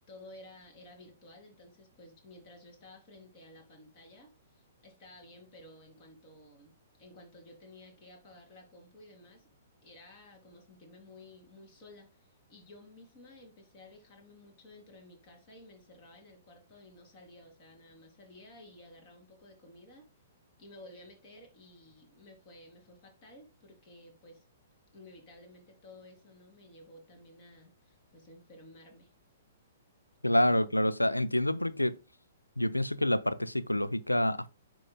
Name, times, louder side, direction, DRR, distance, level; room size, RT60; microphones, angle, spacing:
voice 1, 0.1-9.5 9.8-20.1 20.6-24.4 24.9-29.1, left 1 dB, 40° left, 3.4 m, -54 dB
voice 2, 30.2-32.0 32.6-34.5, left 1 dB, 90° left, 0.5 m, -27 dB
11.0 x 3.9 x 2.2 m
figure-of-eight pair, 115°, 0 cm